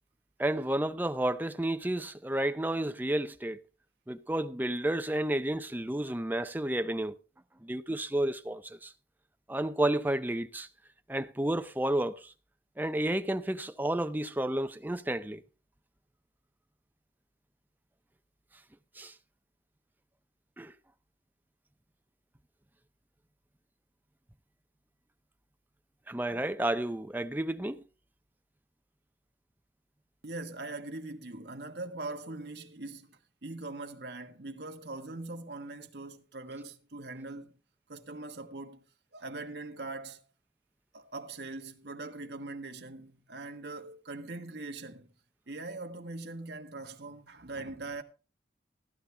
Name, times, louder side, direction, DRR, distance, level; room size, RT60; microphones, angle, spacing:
voice 1, 0.4-3.6 4.1-7.2 7.6-8.9 9.5-10.7 11.1-12.3 12.8-15.4 19.0-19.1 20.6-20.7 26.1-27.8, right 1 dB, 10° right, 0.5 m, -31 dB
voice 2, 30.2-37.6 37.9-38.9 39.1-40.2 40.9-45.1 45.5-48.0, right 2 dB, 65° right, 1.3 m, -41 dB
14.5 x 11.0 x 3.3 m
head